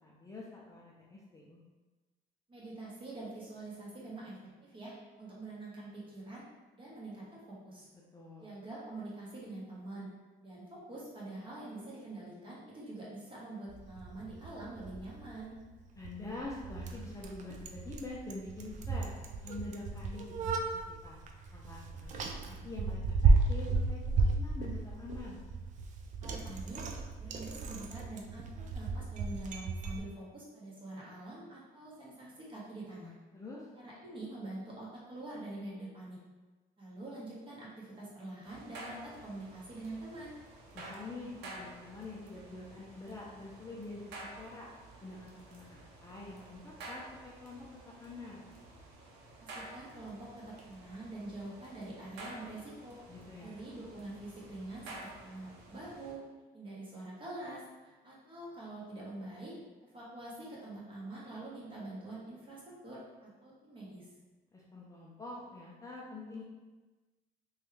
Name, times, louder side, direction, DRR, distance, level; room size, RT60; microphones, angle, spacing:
voice 1, 0.0-1.6 8.1-8.5 16.0-19.2 19.4-20.6 21.0-21.2 21.5-24.0 24.3-25.4 33.3-33.7 40.7-44.1 44.4-44.7 45.0-48.5 53.1-53.6 64.5-66.4, left 2 dB, 20° left, -5 dB, 0.5 m, -46 dB
voice 2, 2.5-6.4 6.7-7.9 8.4-10.1 10.4-15.6 26.2-26.8 27.2-33.2 33.7-36.2 36.8-40.4 49.4-53.0 53.4-56.2 56.5-64.1, right 2 dB, 30° right, -6 dB, 1.1 m, -45 dB
Bicycle, 13.7-30.0, right 3 dB, 45° right, 0.4 m, -34 dB
sound 1, 38.4-56.1, right 2 dB, 85° right, 0.6 m, -51 dB
3.0 x 2.3 x 3.1 m, 1.2 s
cardioid pair, 110°, 17 cm